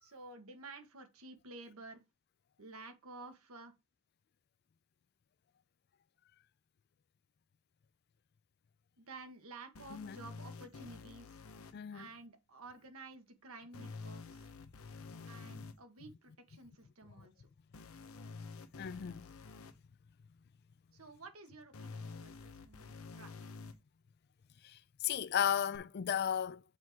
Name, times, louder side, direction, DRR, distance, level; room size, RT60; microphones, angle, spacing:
voice 1, 0.0-2.0 2.6-3.7 9.0-11.4 11.9-14.5 15.3-17.5 20.9-23.7, right 3 dB, 90° right, 1.6 m, -52 dB
sound 1, 9.7-11.7 13.7-15.7 17.7-19.7 21.7-23.7 25.7-25.8, left 4 dB, 80° left, 0.9 m, -49 dB
voice 2, 11.7-12.1 18.8-19.3 24.6-26.6, left 9 dB, 50° left, 0.4 m, -35 dB
6.6 x 3.6 x 6.2 m
head